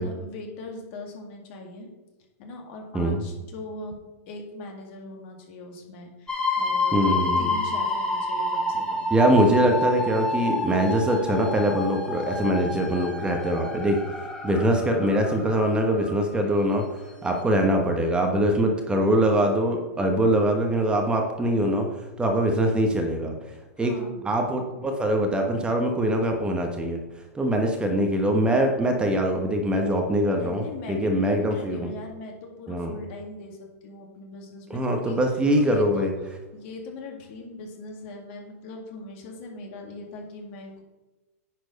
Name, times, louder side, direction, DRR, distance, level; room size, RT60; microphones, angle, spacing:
voice 1, 0.0-1.9 2.4-9.1 14.4-14.7 18.6-18.9 22.3-22.6 23.8-24.2 30.3-35.2 35.7-36.1 36.5-40.8, left 2 dB, 50° left, 2 dB, 2.1 m, -40 dB
sound 1, 6.3-16.2 17.0-17.1 17.4-17.5, left 2 dB, 10° left, 1.8 m, -28 dB
voice 2, 6.9-7.5 9.1-16.8 17.2-21.9 22.2-23.3 23.8-23.9 24.2-27.0 27.3-31.9 32.7-32.9 34.7-36.1, right 1 dB, 10° right, 2 dB, 1.0 m, -23 dB
9.8 x 4.4 x 5.2 m, 1.1 s
hypercardioid pair, 125°, 8 cm